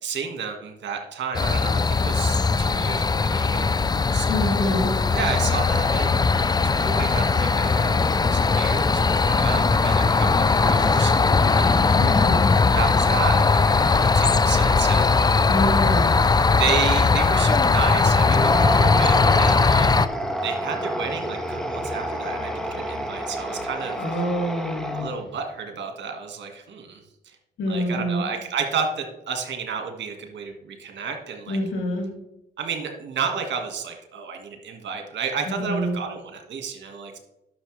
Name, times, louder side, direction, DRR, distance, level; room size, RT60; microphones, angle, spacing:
voice 1, 0.0-4.6 5.1-11.9 12.7-15.1 16.5-20.0 20.4-24.2 24.9-27.4 27.7-31.6 32.6-37.2, right 6 dB, 65° right, 4 dB, 1.8 m, -32 dB
sound 1, 1.3-20.1, left 4 dB, 20° left, 0.4 m, -19 dB
voice 2, 4.3-5.0 11.9-12.5 15.5-16.2 24.0-25.1 27.6-28.2 31.5-32.1 35.5-36.0, equal, 70° left, 0 dB, 2.7 m, -26 dB
sound 2, 18.2-25.4, equal, ahead, 1.4 m, -29 dB
11.0 x 6.6 x 3.3 m, 0.86 s
supercardioid pair, 50°, 20 cm